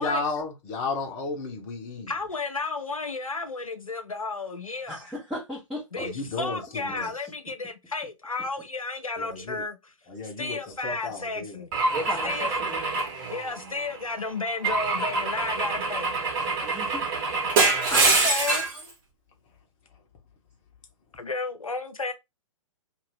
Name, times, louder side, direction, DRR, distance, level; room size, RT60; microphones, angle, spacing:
voice 1, 0.0-2.1 6.0-7.1 9.2-9.6 10.1-11.6 18.0-18.2, left 3 dB, 30° left, 1.0 m, -33 dB
voice 2, 2.1-5.0 5.9-9.9 10.2-11.7 12.2-12.7 13.3-16.1 17.9-18.7 21.2-22.1, left 3 dB, 85° left, 0.7 m, -33 dB
voice 3, 4.9-6.1 11.9-12.8 16.6-17.2 17.9-18.0, equal, ahead, 0.9 m, -36 dB
Car / Engine / Glass, 11.7-13.9 14.6-18.8, right 3 dB, 35° right, 1.1 m, -25 dB
2.7 x 2.5 x 3.2 m
figure-of-eight pair, 115°, 17 cm